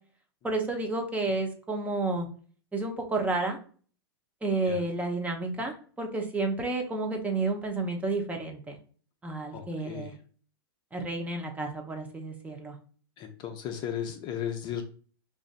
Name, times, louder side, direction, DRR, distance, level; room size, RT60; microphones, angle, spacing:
voice 1, 0.4-2.3 2.7-3.6 4.4-8.8 9.2-10.1 10.9-12.7, right 3 dB, 10° right, 2 dB, 0.7 m, -31 dB
voice 2, 9.5-10.2 13.2-14.8, left 9 dB, 35° left, 5 dB, 0.6 m, -35 dB
5.0 x 2.5 x 2.4 m, 0.42 s
hypercardioid pair, 110°, 13 cm